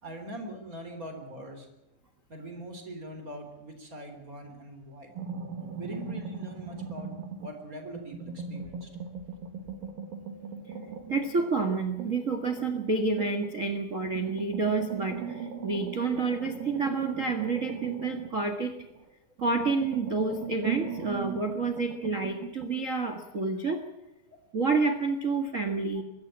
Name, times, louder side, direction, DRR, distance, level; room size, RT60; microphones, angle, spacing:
voice 1, 0.0-1.7 2.3-5.1 5.8-7.1 7.4-8.9, right 1 dB, 25° right, 5 dB, 3.7 m, -42 dB
sound 1, 5.2-7.6 7.9-13.6 14.0-19.1 19.4-22.8, right 6 dB, 75° right, 3.8 m, -39 dB
voice 2, 11.1-18.7 19.4-23.8 24.5-26.0, right 4 dB, 50° right, 7 dB, 0.9 m, -29 dB
23.0 x 13.5 x 8.8 m, 0.99 s
omnidirectional pair, 4.2 m